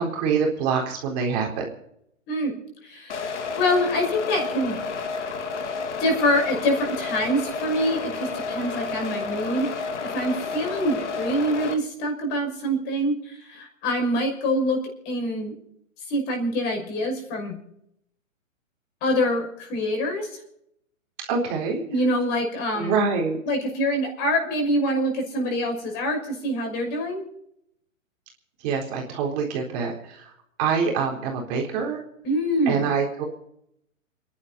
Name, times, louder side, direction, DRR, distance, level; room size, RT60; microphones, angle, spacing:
voice 1, 0.0-1.7 21.3-21.8 22.7-23.4 28.6-30.3 30.6-32.0 32.7-33.2, right 5 dB, 30° right, 0 dB, 4.0 m, -25 dB
voice 2, 2.8-3.2 3.6-4.8 6.0-9.7 10.0-14.8 15.0-15.5 16.1-17.6 19.0-20.3 21.9-23.0 23.4-27.2 32.2-32.9, equal, 25° left, 3 dB, 6.0 m, -25 dB
sound 1, 3.1-11.7, left 4 dB, 60° left, 2.9 m, -31 dB
29.0 x 11.5 x 4.2 m, 0.74 s
hypercardioid pair, 145°, 40 cm